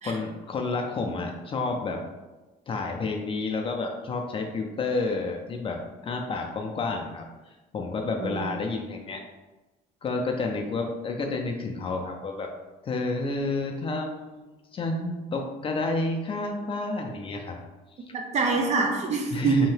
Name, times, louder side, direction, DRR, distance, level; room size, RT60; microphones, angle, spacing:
voice 1, 0.0-2.0 2.7-7.2 7.7-9.2 10.0-12.5 12.8-17.6 18.1-18.2 19.3-19.7, left 3 dB, 35° left, 2 dB, 0.4 m, -30 dB
voice 2, 8.2-8.5 18.1-19.7, right 4 dB, 40° right, 2 dB, 0.5 m, -25 dB
2.7 x 2.2 x 3.2 m, 1.1 s
cardioid pair, 110°, 17 cm